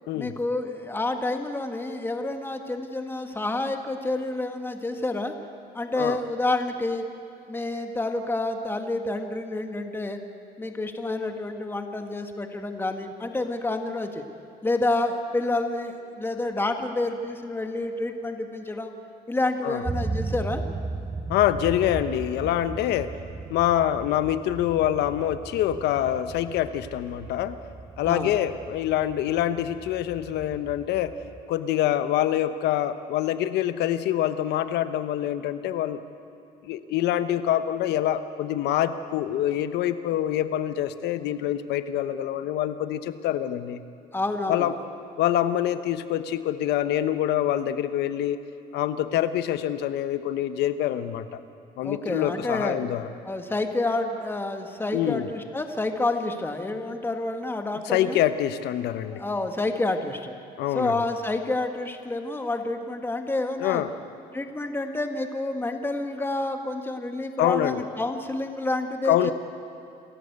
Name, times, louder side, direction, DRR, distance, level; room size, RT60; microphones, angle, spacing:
voice 1, 0.1-5.3 5.7-7.0 7.5-10.2 10.6-14.2 14.6-18.9 19.3-20.6 28.0-28.3 44.1-44.7 51.8-52.8 53.3-58.2 59.0-60.3 60.7-63.8 64.3-69.3, left 2 dB, 15° left, 5 dB, 1.7 m, -29 dB
sound 1, 19.8-31.4, right 3 dB, 15° right, 0.8 m, -36 dB
voice 2, 21.3-23.1 23.5-27.6 28.0-31.1 31.5-36.0 36.6-43.8 44.5-44.7 45.2-48.4 48.7-51.4 51.8-53.1 54.9-55.3 57.9-59.2 60.6-61.0 63.6-63.9 67.4-67.8 69.0-69.3, left 11 dB, 80° left, 11 dB, 1.1 m, -25 dB
27.5 x 14.0 x 8.1 m, 2.7 s
cardioid pair, 110°, 17 cm